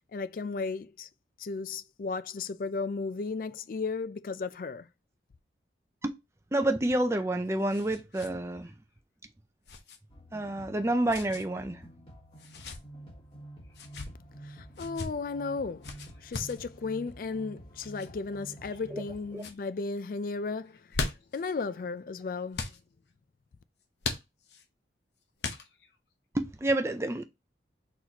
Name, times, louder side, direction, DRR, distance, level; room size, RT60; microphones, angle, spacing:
voice 1, 0.1-1.1 1.4-4.9 14.4-15.9 16.2-20.8 21.3-22.7, left 4 dB, 50° left, 0.4 m, -35 dB
voice 2, 6.5-8.7 10.3-11.8 18.9-19.0 19.3-19.4 26.3-27.2, right 1 dB, 15° right, 0.4 m, -29 dB
sound 1, 7.0-8.3 8.6-8.7 9.7-10.0 11.1-11.4 12.4-12.8 13.7-14.1 14.7-15.1 15.8-16.6 17.8-18.1 18.7-19.1 19.3-19.6 20.6-21.4 22.5-22.8 24.0-24.6 25.4-25.9, left 3 dB, 70° left, 0.8 m, -38 dB
sound 2, 10.1-19.4, right 1 dB, 30° left, 1.5 m, -49 dB
4.4 x 4.0 x 2.8 m
head